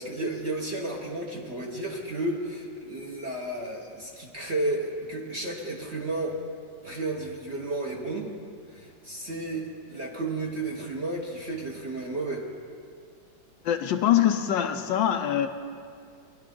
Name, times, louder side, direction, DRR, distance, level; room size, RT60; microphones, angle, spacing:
voice 1, 0.0-6.4 6.8-8.3 8.7-12.4, right 2 dB, 40° right, -1 dB, 1.1 m, -32 dB
voice 2, 13.6-15.5, left 10 dB, 75° left, 7 dB, 1.2 m, -23 dB
20.0 x 11.0 x 3.8 m, 2.3 s
omnidirectional pair, 2.2 m